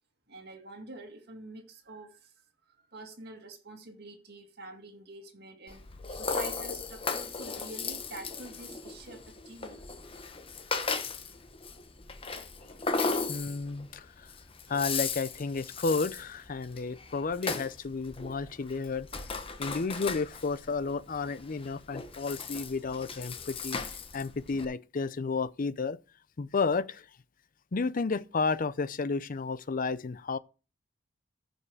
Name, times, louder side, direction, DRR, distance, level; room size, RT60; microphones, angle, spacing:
voice 1, 0.3-2.3 2.7-5.8 6.1-9.8, right 2 dB, 60° right, 2.1 m, -47 dB
Rattle (instrument), 5.7-24.6, left 4 dB, 30° left, 1.1 m, -37 dB
voice 2, 13.3-14.3 14.7-19.1 19.6-23.8 24.1-26.0 26.4-27.1 27.7-30.4, left 4 dB, 45° left, 0.5 m, -32 dB
14.5 x 5.3 x 4.8 m
head